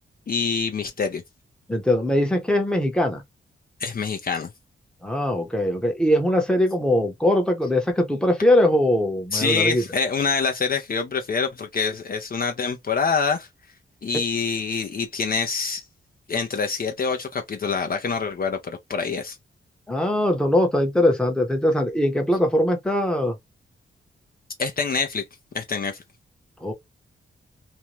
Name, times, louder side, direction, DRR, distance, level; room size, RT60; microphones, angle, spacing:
voice 1, 0.3-1.2 3.8-4.5 9.3-13.5 14.0-15.9 16.3-19.4 24.6-25.2 25.5-26.0, left 5 dB, 45° left, 0.5 m, -25 dB
voice 2, 1.7-3.2 5.0-9.8 19.9-23.4 26.6-26.7, left 1 dB, 5° left, 0.8 m, -21 dB
2.6 x 2.2 x 2.9 m
wide cardioid pair, 115°, 21 cm